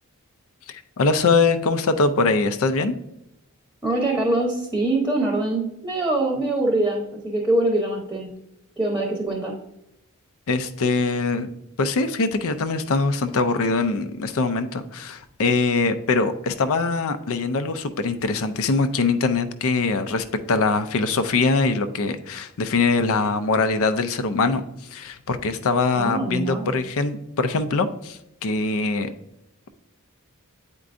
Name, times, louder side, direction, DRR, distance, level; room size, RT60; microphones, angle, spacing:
voice 1, 0.7-2.9 10.5-11.5 11.8-24.6 24.9-29.1, left 3 dB, 65° left, 11 dB, 0.5 m, -22 dB
voice 2, 3.8-8.3 8.8-9.6 25.9-26.8, right 2 dB, 10° right, 0 dB, 0.9 m, -24 dB
8.3 x 4.5 x 2.5 m, 0.82 s
head